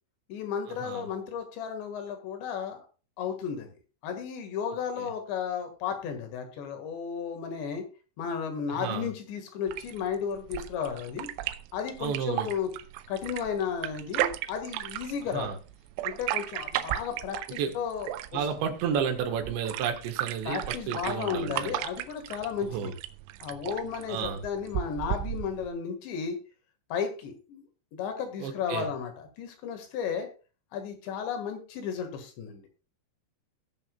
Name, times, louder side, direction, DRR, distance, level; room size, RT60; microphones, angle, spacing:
voice 1, 0.3-2.9 3.2-3.8 4.0-7.9 8.2-11.3 11.7-12.7 13.1-15.5 16.0-18.5 20.5-22.9 23.4-26.4 26.9-27.6 27.9-30.3 30.7-32.6, left 7 dB, 70° left, 3.9 m, -34 dB
voice 2, 8.8-9.1 12.0-12.5 15.3-15.6 17.6-17.8 18.3-21.7 22.7-22.9 24.1-24.4 28.4-28.9, right 7 dB, 70° right, 3.5 m, -31 dB
sound 1, 9.7-25.7, right 14 dB, 85° right, 3.1 m, -36 dB
20.0 x 7.1 x 2.3 m
omnidirectional pair, 5.6 m